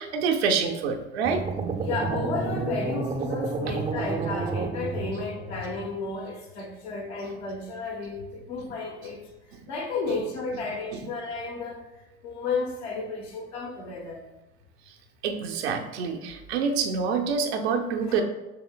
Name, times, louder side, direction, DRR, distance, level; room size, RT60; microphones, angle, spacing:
voice 1, 0.0-1.4 3.7-3.8 10.9-11.0 15.2-18.2, right 5 dB, 75° right, 4 dB, 0.6 m, -26 dB
sound 1, 1.2-5.5, right 4 dB, 20° right, 0.4 m, -30 dB
voice 2, 1.8-9.3 9.7-11.8 12.2-14.2 18.1-18.2, left 4 dB, 75° left, 0 dB, 1.1 m, -32 dB
6.7 x 3.1 x 2.3 m, 1.1 s
hypercardioid pair, 65°, 33 cm